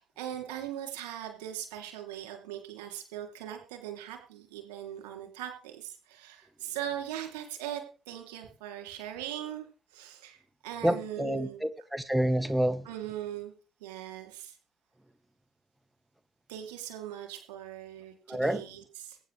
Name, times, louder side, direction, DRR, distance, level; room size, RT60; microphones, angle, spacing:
voice 1, 0.0-9.7 9.9-10.4 10.6-11.7 12.8-13.5 13.8-14.6 16.5-19.2, right 11 dB, 75° right, 2.9 m, -40 dB
voice 2, 10.8-12.8 18.3-18.6, right 1 dB, 10° right, 1.3 m, -28 dB
22.5 x 9.3 x 3.3 m
figure-of-eight pair, 45°, 0 cm